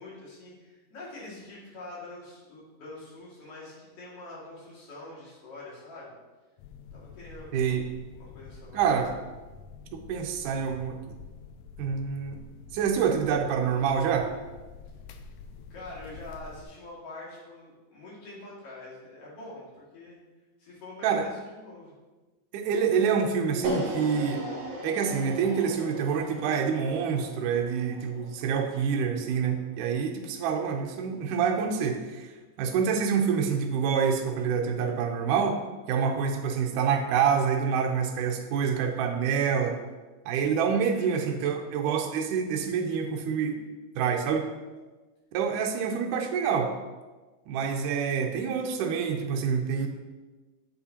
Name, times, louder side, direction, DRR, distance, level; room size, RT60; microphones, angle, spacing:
voice 1, 0.0-6.1 6.9-7.8 8.1-8.9 15.7-20.2 20.6-21.9 40.8-41.8, left 2 dB, 50° left, -6 dB, 3.1 m, -45 dB
sound 1, 6.6-16.7, left 5 dB, 85° left, 2.1 m, -47 dB
voice 2, 7.5-7.8 8.7-9.1 9.9-11.1 11.8-12.4 12.7-14.3 21.0-21.3 22.5-24.4 24.8-32.3 32.6-35.6 35.9-39.8 40.3-43.6 44.0-44.5 45.3-46.7 47.5-49.9, right 6 dB, 80° right, 2 dB, 2.2 m, -27 dB
sound 2, 23.6-29.8, right 1 dB, 65° right, 1.9 m, -38 dB
8.2 x 7.5 x 2.9 m, 1.2 s
omnidirectional pair, 3.7 m